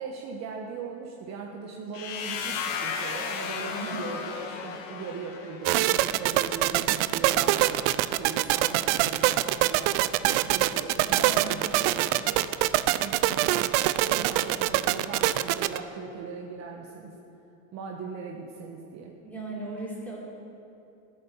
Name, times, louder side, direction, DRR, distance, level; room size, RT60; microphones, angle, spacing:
voice 1, 0.0-12.5 13.0-17.1 17.7-19.1, right 5 dB, 40° right, 0 dB, 1.3 m, -39 dB
sound 1, 1.9-5.8, left 6 dB, 55° left, 1.7 m, -34 dB
voice 2, 3.6-4.0 11.1-11.7 19.2-20.2, right 2 dB, 5° left, -6 dB, 4.0 m, -37 dB
sound 2, 5.7-15.8, right 16 dB, 60° right, 0.6 m, -24 dB
15.0 x 8.3 x 7.3 m, 2.8 s
supercardioid pair, 125°, 41 cm